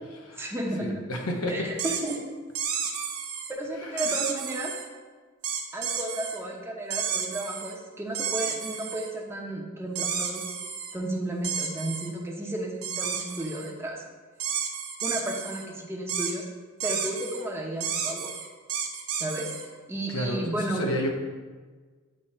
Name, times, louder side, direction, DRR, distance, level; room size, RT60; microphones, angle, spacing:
voice 1, 0.4-1.0 1.5-2.2 3.5-4.7 5.7-10.6 10.9-14.0 15.0-16.5 16.8-18.3 19.2-19.5 19.9-20.8, right 1 dB, 10° right, -1 dB, 0.8 m, -33 dB
voice 2, 1.1-1.5 3.8-4.2 20.1-21.1, left 1 dB, 80° left, 1 dB, 1.0 m, -31 dB
sound 1, 1.8-2.2 2.6-3.5 4.0-4.9 5.4-6.4 6.9-7.7 8.1-9.1 10.0-10.9 11.4-12.1 12.8-13.7 14.4-15.7 16.1-16.3 16.8-17.4 17.8-19.7, right 7 dB, 75° right, 0.8 m, -31 dB
8.8 x 3.0 x 4.3 m, 1.4 s
head